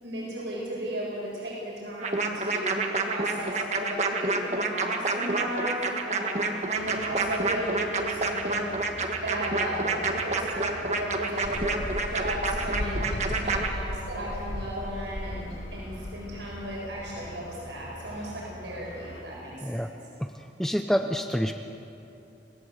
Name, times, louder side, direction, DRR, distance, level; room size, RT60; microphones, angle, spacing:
voice 1, 0.0-8.7 9.2-11.8 12.1-19.9, right 1 dB, 85° right, -4 dB, 7.4 m, -35 dB
sound 1, 2.0-13.7, right 3 dB, 40° right, 1.7 m, -28 dB
sound 2, 6.7-19.2, equal, 80° left, 6.2 m, -45 dB
sound 3, 11.4-18.1, left 1 dB, 50° left, 0.9 m, -36 dB
voice 2, 20.6-21.5, equal, ahead, 5 dB, 0.6 m, -27 dB
28.0 x 17.5 x 8.1 m, 2.8 s
head